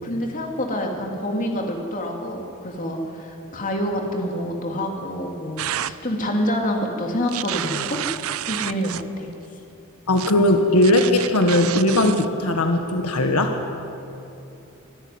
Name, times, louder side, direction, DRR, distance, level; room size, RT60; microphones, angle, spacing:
voice 1, 0.0-8.0 8.5-9.3, equal, 35° left, 1 dB, 2.9 m, -27 dB
sound 1, 5.6-5.9 7.3-9.1 10.2-10.3 10.8-12.3, right 11 dB, 70° right, 0.5 m, -29 dB
voice 2, 10.1-13.6, left 1 dB, 85° left, 5 dB, 1.6 m, -19 dB
26.0 x 13.0 x 9.6 m, 2.9 s
head